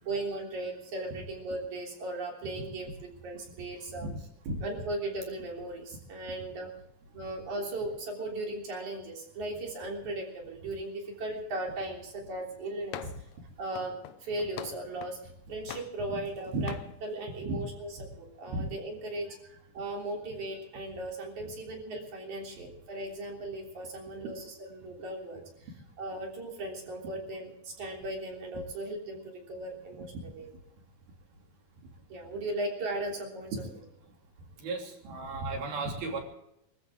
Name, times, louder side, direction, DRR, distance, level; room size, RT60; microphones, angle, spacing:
voice 1, 0.0-4.1 4.6-6.7 7.1-13.1 13.6-14.0 14.2-15.2 15.5-16.7 17.0-17.9 18.2-19.3 19.7-25.4 26.0-30.5 32.1-33.7, right 2 dB, 55° right, -1 dB, 4.6 m, -37 dB
sound 1, 12.9-13.3 13.8-15.2 15.7-16.4 16.7-16.9, left 12 dB, 75° left, 1.8 m, -43 dB
voice 2, 34.6-36.2, right 2 dB, 80° right, 1 dB, 4.8 m, -34 dB
25.0 x 14.0 x 3.7 m, 0.83 s
omnidirectional pair, 4.3 m